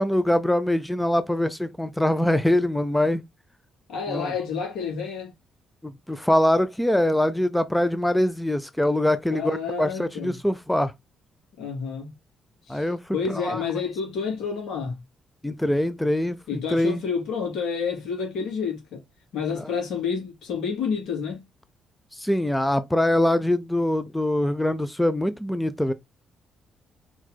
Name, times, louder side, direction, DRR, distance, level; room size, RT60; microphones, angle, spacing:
voice 1, 0.0-3.2 4.1-4.3 5.8-10.9 12.7-13.0 13.3-13.6 15.4-17.0 22.1-25.9, left 1 dB, 5° left, 0.5 m, -23 dB
voice 2, 3.9-5.3 9.3-10.3 11.6-12.1 12.6-15.0 16.5-19.0 19.3-21.5, left 6 dB, 75° left, 3.1 m, -29 dB
4.7 x 4.6 x 2.2 m
cardioid pair, 90°, 0 cm